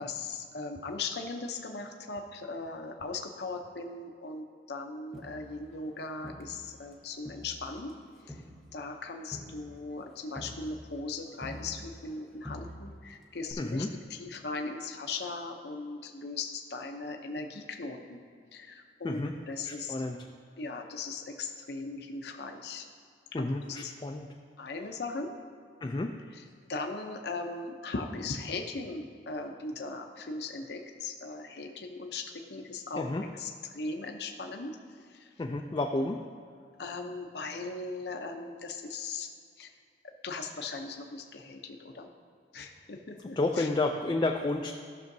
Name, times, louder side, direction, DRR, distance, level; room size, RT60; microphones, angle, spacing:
voice 1, 0.0-7.9 8.3-8.4 8.7-18.2 18.5-20.0 20.6-22.8 23.4-23.9 24.6-25.3 26.3-32.2 32.5-33.1 33.3-35.3 36.8-39.3 39.6-39.7 40.0-42.1 42.5-43.7, left 3 dB, 65° left, 3 dB, 0.7 m, -39 dB
Crowd, 5.1-6.9 7.3-12.2 12.4-13.1 13.5-13.6, equal, ahead, 0.8 m, -47 dB
voice 2, 13.6-13.9 19.0-19.3 19.6-20.3 23.3-24.3 25.8-26.2 33.0-33.2 35.4-36.3 43.4-44.7, left 2 dB, 25° left, 3 dB, 0.3 m, -31 dB
14.5 x 6.2 x 2.7 m, 2.2 s
head